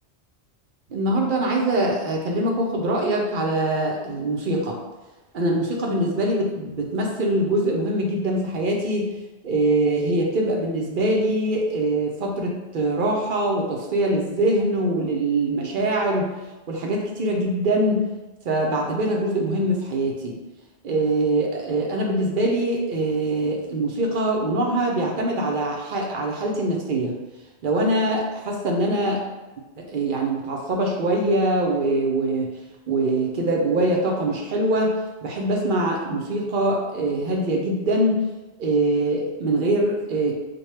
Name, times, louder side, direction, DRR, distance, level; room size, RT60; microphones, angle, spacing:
voice 1, 0.9-4.8 5.3-9.1 9.4-16.3 16.7-18.0 18.4-20.3 20.8-27.2 27.6-29.2 29.9-32.5 32.9-34.9 35.2-38.2 38.6-40.3, right 1 dB, 55° right, 0 dB, 0.7 m, -23 dB
4.2 x 2.2 x 3.2 m, 1.1 s
omnidirectional pair, 1.1 m